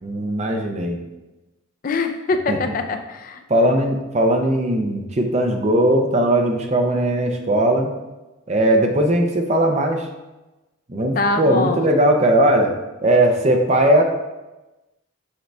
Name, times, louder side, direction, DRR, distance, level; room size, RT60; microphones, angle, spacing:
voice 1, 0.0-1.0 2.5-2.6 3.5-7.9 8.5-10.1 10.9-12.7 13.0-14.0, right 1 dB, 30° right, 3 dB, 0.6 m, -18 dB
voice 2, 1.8-3.4 11.1-11.9, left 3 dB, 40° left, 7 dB, 0.4 m, -23 dB
6.5 x 4.7 x 3.4 m, 1.0 s
head